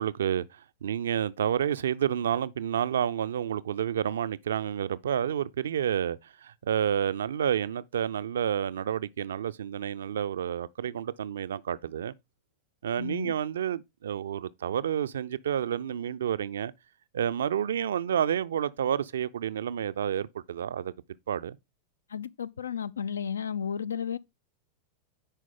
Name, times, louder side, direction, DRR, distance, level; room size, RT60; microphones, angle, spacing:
voice 1, 0.0-12.1 12.8-16.7 17.1-20.9 21.3-21.6, right 9 dB, 65° right, 0.4 m, -30 dB
voice 2, 13.0-13.3 22.1-24.2, left 7 dB, 70° left, 0.4 m, -33 dB
9.8 x 4.7 x 3.7 m
figure-of-eight pair, 90°, 0 cm